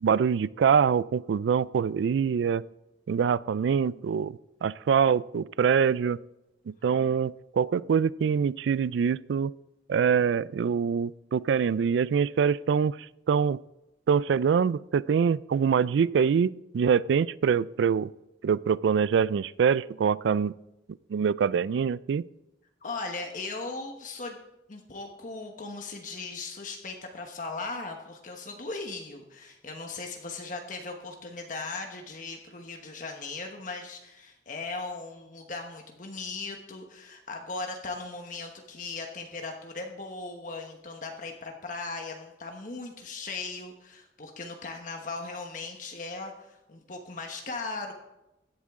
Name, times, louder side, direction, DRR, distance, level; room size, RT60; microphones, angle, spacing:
voice 1, 0.0-2.6 3.1-6.2 6.7-9.5 9.9-13.0 13.3-13.6 14.1-18.1 18.4-20.5 21.1-22.2, right 7 dB, 75° right, 20 dB, 0.3 m, -24 dB
voice 2, 22.8-24.4 24.7-47.9, left 3 dB, 45° left, 3 dB, 1.2 m, -38 dB
16.0 x 11.0 x 3.6 m, 0.93 s
head